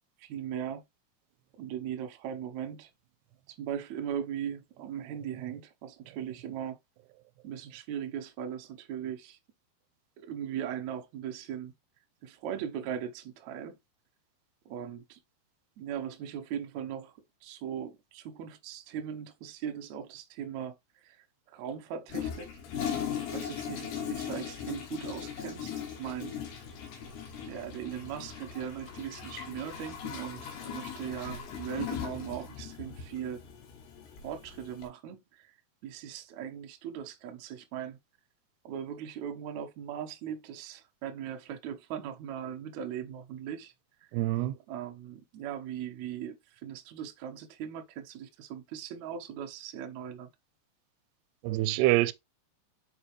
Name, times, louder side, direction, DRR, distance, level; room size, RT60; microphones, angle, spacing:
voice 1, 0.2-0.8 1.6-2.9 3.5-6.8 7.4-9.4 10.2-11.7 12.2-13.8 14.6-15.2 15.8-17.1 17.4-20.8 21.0-21.2 21.5-22.9 23.3-26.3 27.5-33.4 34.2-35.5 35.8-38.0 38.6-43.7 44.7-50.3, right 9 dB, 70° right, 1.7 m, -39 dB
Toilet flush, 22.1-34.9, left 8 dB, 85° left, 3.2 m, -39 dB
voice 2, 44.1-44.5 51.4-52.1, right 16 dB, 85° right, 2.6 m, -25 dB
6.2 x 5.1 x 3.1 m
omnidirectional pair, 4.6 m